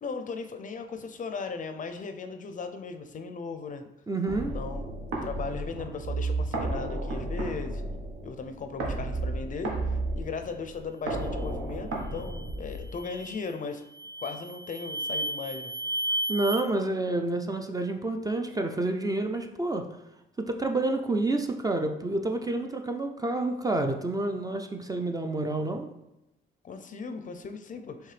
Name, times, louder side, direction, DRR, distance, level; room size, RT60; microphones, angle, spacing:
voice 1, 0.0-3.8 4.5-4.9 5.2-7.8 8.2-13.8 14.2-15.7 26.6-28.1, left 4 dB, 40° left, 7 dB, 0.4 m, -37 dB
voice 2, 4.1-4.6 16.3-19.9 20.4-25.9, right 2 dB, 20° right, 5 dB, 0.4 m, -29 dB
sound 1, 4.3-13.2, right 2 dB, 90° right, 1.0 m, -33 dB
sound 2, 12.1-12.4 12.9-13.4 13.9-16.6, right 1 dB, 55° right, 0.7 m, -33 dB
4.6 x 3.2 x 3.2 m, 0.91 s
cardioid pair, 90°, 20 cm